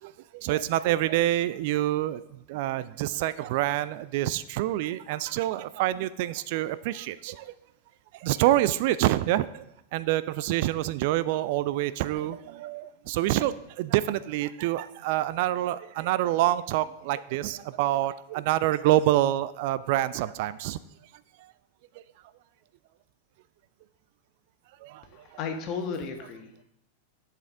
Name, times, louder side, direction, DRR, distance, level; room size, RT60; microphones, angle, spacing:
voice 1, 0.0-7.5 8.1-9.6 9.9-20.8 21.4-21.5 24.8-25.2, right 14 dB, 50° right, 16 dB, 0.3 m, -27 dB
voice 2, 25.1-26.6, left 5 dB, 40° left, 4 dB, 1.3 m, -34 dB
10.5 x 7.4 x 3.6 m, 0.82 s
figure-of-eight pair, 90°, 0 cm